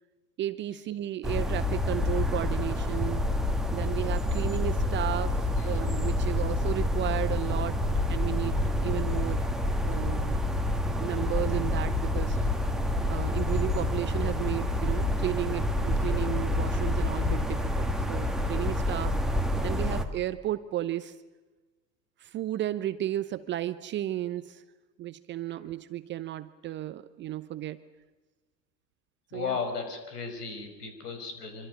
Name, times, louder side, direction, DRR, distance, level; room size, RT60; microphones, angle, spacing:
voice 1, 0.4-3.3 3.7-7.8 8.1-9.5 9.8-10.5 11.0-12.4 13.1-19.2 19.6-21.1 22.2-24.6 25.0-27.8 29.3-29.6, right 13 dB, 20° right, 13 dB, 0.8 m, -33 dB
sound 1, 1.2-20.1, left 1 dB, ahead, 2.0 m, -28 dB
voice 2, 29.3-31.7, left 5 dB, 65° left, 7 dB, 5.8 m, -35 dB
25.5 x 25.5 x 6.5 m, 1.2 s
figure-of-eight pair, 95°, 50 cm